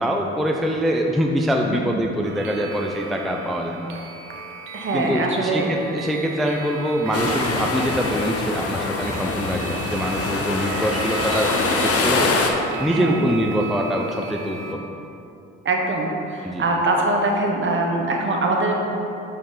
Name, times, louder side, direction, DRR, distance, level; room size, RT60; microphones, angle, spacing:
voice 1, 0.0-3.9 4.9-11.5 11.8-12.5 12.8-14.9 16.4-16.7, equal, ahead, 1 dB, 0.4 m, -24 dB
sound 1, 2.2-14.7, right 5 dB, 80° right, 0.7 m, -36 dB
voice 2, 4.7-5.7 12.9-13.2 15.6-18.7, right 2 dB, 40° right, 1 dB, 1.2 m, -23 dB
sound 2, 7.1-12.5, left 3 dB, 50° left, 0.9 m, -24 dB
6.5 x 5.4 x 3.8 m, 2.8 s
supercardioid pair, 70°, 31 cm